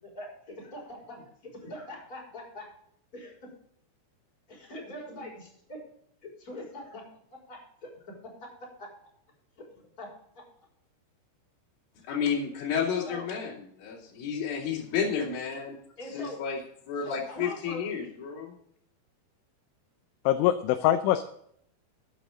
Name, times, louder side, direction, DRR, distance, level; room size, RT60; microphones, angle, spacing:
voice 1, 0.0-2.7 3.1-3.5 4.5-5.8 6.2-7.1 7.5-7.9 8.8-8.9 9.6-10.1 13.0-13.3 16.0-16.4 17.0-17.8, left 1 dB, 15° left, -3 dB, 6.0 m, -43 dB
voice 2, 12.1-15.8 16.1-16.6 16.9-18.5, left 6 dB, 50° left, -3 dB, 4.4 m, -31 dB
voice 3, 20.3-21.2, left 13 dB, 80° left, 8 dB, 3.1 m, -23 dB
13.0 x 11.0 x 3.8 m, 0.69 s
omnidirectional pair, 5.5 m